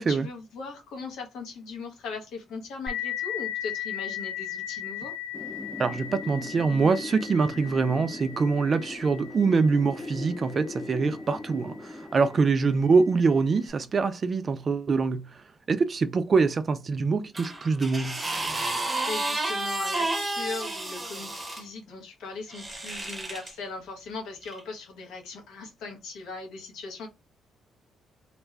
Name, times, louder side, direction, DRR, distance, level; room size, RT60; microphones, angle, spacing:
voice 1, 0.0-5.1 18.8-27.1, left 4 dB, 85° left, 0.9 m, -39 dB
sound 1, 2.9-12.1, left 11 dB, ahead, 1.0 m, -38 dB
Wind, 5.3-14.0, left 2 dB, 20° left, 0.5 m, -40 dB
voice 2, 5.8-15.3 15.7-18.2, right 4 dB, 40° right, 0.3 m, -24 dB
sound 2, 17.3-21.6 22.5-23.5 24.4-24.6, right 2 dB, 20° right, 0.7 m, -31 dB
2.5 x 2.2 x 3.1 m
cardioid pair, 90°, 0 cm